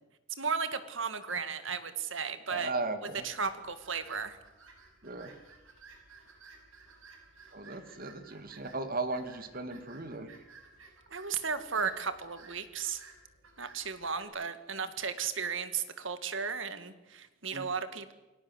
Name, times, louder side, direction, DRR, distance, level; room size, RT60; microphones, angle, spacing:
voice 1, 0.4-2.7 3.2-4.4 11.1-13.0 13.6-18.1, right 6 dB, 65° right, 11 dB, 2.0 m, -35 dB
voice 2, 2.5-3.2 5.0-5.4 7.5-10.3 17.5-17.7, right 3 dB, 45° right, 9 dB, 2.4 m, -36 dB
sound 1, 3.2-14.3, right 4 dB, 80° right, 6.0 m, -56 dB
28.5 x 18.0 x 8.0 m, 1.1 s
head